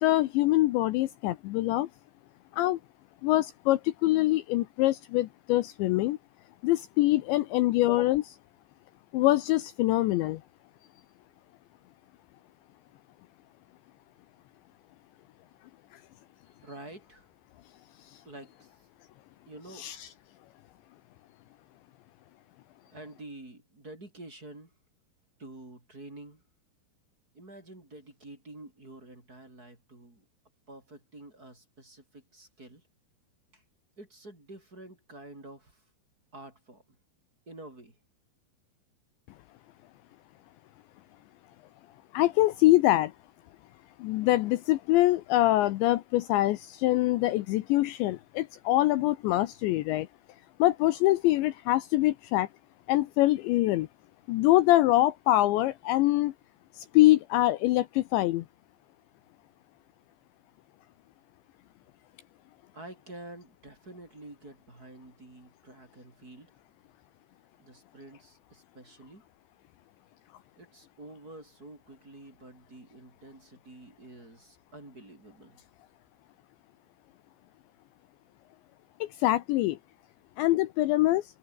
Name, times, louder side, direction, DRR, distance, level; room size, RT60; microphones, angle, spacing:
voice 1, 0.0-1.9 2.5-2.8 3.2-6.2 6.6-8.4 9.1-10.4 19.7-20.1 42.1-43.1 44.0-50.1 50.6-52.5 52.9-53.9 54.3-56.3 56.8-58.5 79.0-79.8 80.4-81.2, left 16 dB, 80° left, 2.9 m, -24 dB
voice 2, 16.6-17.3 18.2-18.7 19.5-19.9 22.9-24.7 25.4-26.4 27.3-30.2 30.7-32.8 33.5-33.6 34.0-35.8 36.3-36.8 37.5-38.0 62.7-66.5 67.6-69.2 70.6-75.6, right 2 dB, 20° right, 4.7 m, -48 dB
omnidirectional pair, 5.8 m